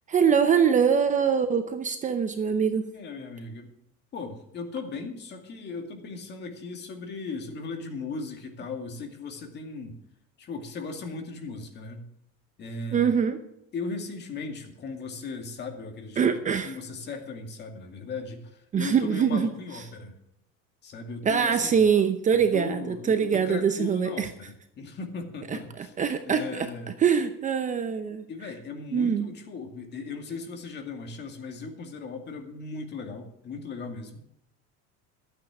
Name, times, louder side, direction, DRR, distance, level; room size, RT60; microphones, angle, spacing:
voice 1, 0.1-2.9 12.9-13.4 16.2-16.7 18.7-19.5 21.2-24.3 25.8-26.7 27.0-28.2 28.9-29.3, right 7 dB, 25° right, 8 dB, 0.7 m, -23 dB
voice 2, 2.9-3.7 4.1-10.0 10.4-12.0 12.6-13.2 13.7-16.3 16.6-20.2 20.8-21.8 22.3-25.9 26.2-26.9 28.3-34.2, left 4 dB, 35° left, 4 dB, 2.3 m, -37 dB
13.0 x 9.0 x 6.1 m, 0.76 s
cardioid pair, 155°, 31 cm